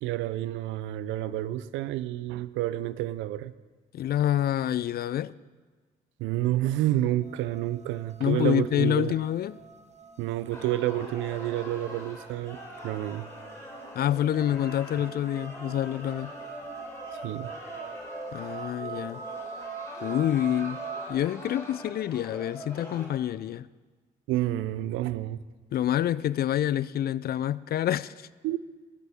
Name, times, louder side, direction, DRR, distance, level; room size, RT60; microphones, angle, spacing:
voice 1, 0.0-3.5 6.2-9.2 10.2-12.6 12.8-13.3 17.2-17.5 24.3-25.4 28.4-28.6, right 14 dB, 75° right, 0.5 m, -29 dB
voice 2, 3.9-5.3 8.2-9.6 13.9-16.3 18.3-19.2 20.0-20.8 21.1-23.7 25.7-28.1, left 11 dB, 50° left, 0.4 m, -27 dB
sound 1, 7.2-21.2, right 5 dB, 35° right, 1.0 m, -43 dB
sound 2, 10.5-23.1, left 1 dB, 15° left, 3.8 m, -43 dB
15.0 x 11.5 x 3.6 m
hypercardioid pair, 50°, 20 cm